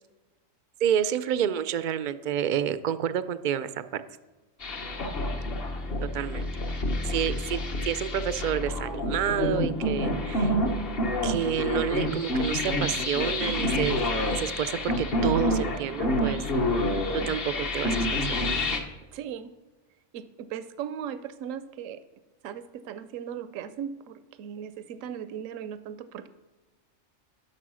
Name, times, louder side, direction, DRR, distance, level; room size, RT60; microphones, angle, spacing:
voice 1, 0.8-4.0 6.1-6.5 7.0-10.6 11.2-14.0 14.2-16.4 17.3-18.4, right 9 dB, 70° right, 13 dB, 0.4 m, -29 dB
sound 1, 4.6-18.8, left 1 dB, 50° left, 1.2 m, -28 dB
voice 2, 19.1-19.5 20.1-22.0 22.4-26.3, right 8 dB, 85° right, 12 dB, 1.0 m, -37 dB
11.0 x 6.2 x 6.2 m, 1.2 s
omnidirectional pair, 1.3 m